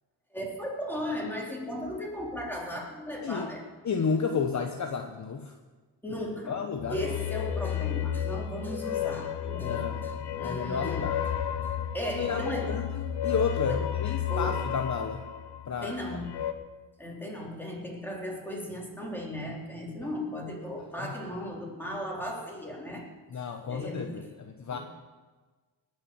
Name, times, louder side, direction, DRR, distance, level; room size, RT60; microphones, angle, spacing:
voice 1, 0.3-3.6 6.0-6.6 6.9-11.2 11.9-12.8 13.7-13.9 14.3-14.7 15.8-16.4 17.0-23.1 23.7-24.3 24.7-24.8, left 1 dB, 5° left, -3 dB, 3.8 m, -36 dB
voice 2, 3.8-5.5 6.5-7.0 9.6-11.2 12.1-15.2 15.7-15.9 21.0-21.1 23.3-24.8, left 5 dB, 40° left, 5 dB, 1.1 m, -32 dB
sound 1, 6.8-16.5, left 9 dB, 65° left, 1.1 m, -32 dB
20.0 x 6.6 x 7.3 m, 1.3 s
cardioid pair, 95°, 44 cm